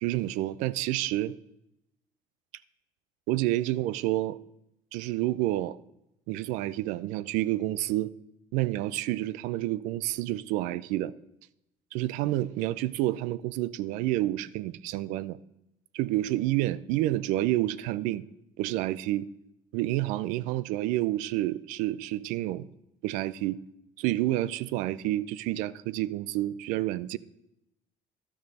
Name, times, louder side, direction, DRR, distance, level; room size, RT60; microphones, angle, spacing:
voice 1, 0.0-1.3 3.3-4.4 4.9-5.8 6.3-8.1 8.5-11.1 11.9-15.4 15.9-18.2 18.6-19.3 19.7-22.7 23.0-23.6 24.0-27.2, right 15 dB, 80° right, 0.4 m, -29 dB
12.5 x 6.5 x 4.1 m
cardioid pair, 125°, 13 cm